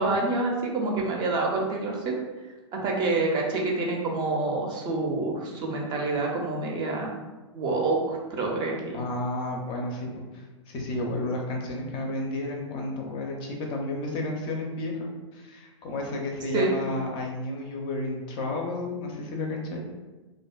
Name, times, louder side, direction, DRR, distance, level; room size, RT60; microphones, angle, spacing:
voice 1, 0.0-2.1 2.7-7.1 7.5-9.0 16.5-16.7, right 3 dB, 30° right, 0 dB, 0.4 m, -27 dB
voice 2, 8.9-15.1 15.3-19.8, left 2 dB, 35° left, 0 dB, 0.4 m, -32 dB
2.4 x 2.3 x 2.2 m, 1.2 s
hypercardioid pair, 115°, 16 cm